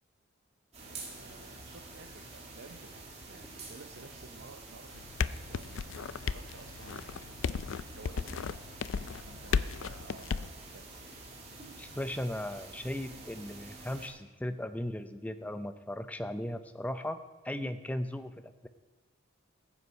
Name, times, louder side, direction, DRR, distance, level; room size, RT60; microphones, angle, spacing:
sound 1, 0.7-14.1, right 3 dB, 30° right, 2.4 m, -48 dB
voice 1, 0.8-5.2 5.5-7.4 7.9-8.6 8.9-10.9, right 4 dB, 60° right, 6 dB, 0.7 m, -54 dB
sound 2, 4.9-10.5, left 6 dB, 70° left, 0.4 m, -34 dB
voice 2, 11.8-17.2 17.4-18.7, left 1 dB, 5° left, 9 dB, 0.5 m, -37 dB
14.5 x 8.1 x 5.6 m, 1.3 s
head